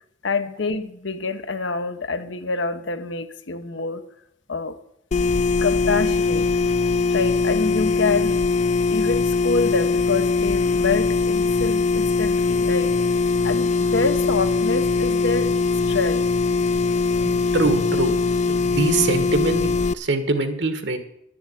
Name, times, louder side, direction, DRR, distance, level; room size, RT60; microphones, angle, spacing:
voice 1, 0.2-4.0 4.5-4.8 5.6-6.5 7.1-8.4 8.9-12.9 13.4-15.5 15.9-16.2, left 4 dB, 85° left, 1.0 m, -26 dB
sound 1, 5.1-19.9, left 4 dB, 40° left, 0.4 m, -21 dB
voice 2, 17.2-18.1 18.5-21.0, right 3 dB, 70° right, 1.6 m, -23 dB
11.5 x 7.1 x 9.1 m
head